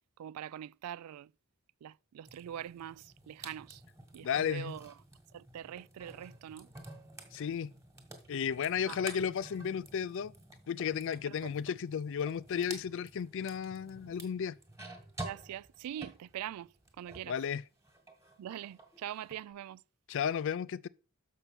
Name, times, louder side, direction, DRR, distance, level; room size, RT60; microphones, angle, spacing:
voice 1, 0.2-1.3 1.8-3.8 4.1-4.9 5.3-6.7 8.9-9.1 11.3-11.7 15.2-17.3 18.4-19.8, right 10 dB, 85° right, 0.3 m, -43 dB
sound 1, 2.3-17.4 17.7-19.4, right 2 dB, 15° right, 1.6 m, -50 dB
voice 2, 4.2-4.8 7.3-7.7 8.3-10.3 10.7-14.6 17.3-17.6 20.1-20.9, left 7 dB, 60° left, 0.4 m, -34 dB
6.6 x 6.0 x 5.8 m
head